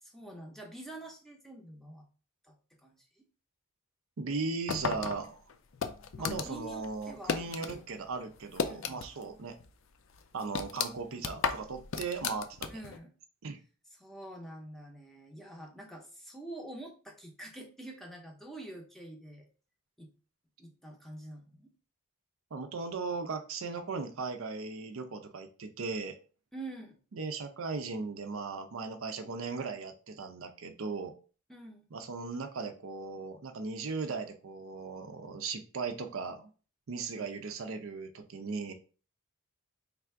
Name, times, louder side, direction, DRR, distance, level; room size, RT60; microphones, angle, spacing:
voice 1, 0.0-2.0 2.4-2.5 2.8-3.3 6.2-7.9 8.7-9.0 12.7-13.1 13.9-19.5 20.0-20.1 20.6-21.7 26.5-27.0 31.5-31.8, right 1 dB, ahead, 1 dB, 0.6 m, -46 dB
voice 2, 4.2-5.4 6.2-9.6 10.3-12.8 13.4-13.6 22.5-26.2 27.1-31.1 31.9-36.5 36.9-38.7, right 4 dB, 70° right, 8 dB, 0.5 m, -37 dB
sound 1, 4.7-7.8 8.1-9.3 9.6-9.7 10.1-13.0, left 6 dB, 60° left, 0.4 m, -34 dB
3.3 x 2.5 x 4.5 m, 0.37 s
head